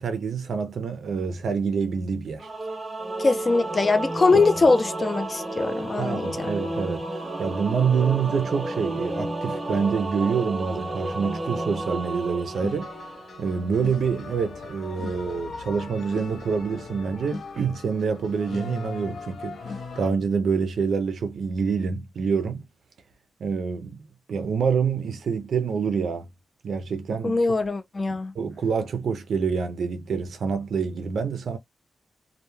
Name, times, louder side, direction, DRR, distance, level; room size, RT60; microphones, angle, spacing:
voice 1, 0.0-2.5 6.0-12.9 13.4-19.6 20.0-22.6 23.4-26.3 26.6-27.4 28.4-31.6, right 6 dB, 80° right, 0.4 m, -26 dB
Singing / Musical instrument, 2.4-13.7, right 2 dB, 20° right, 0.7 m, -32 dB
voice 2, 3.2-6.5 27.2-28.3, left 3 dB, 30° left, 0.3 m, -22 dB
sound 1, 12.5-20.1, left 4 dB, 85° left, 0.6 m, -38 dB
2.1 x 2.0 x 3.0 m
wide cardioid pair, 140°, 0 cm